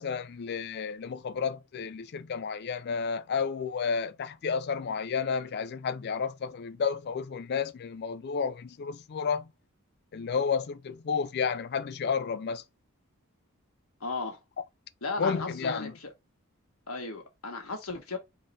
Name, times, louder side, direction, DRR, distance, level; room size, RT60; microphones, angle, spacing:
voice 1, 0.0-9.5 10.1-12.6 15.2-15.9, left 6 dB, 50° left, 0.4 m, -31 dB
voice 2, 14.0-14.4 15.0-16.1 16.9-18.2, left 3 dB, 80° left, 1.5 m, -35 dB
4.0 x 3.7 x 3.3 m
head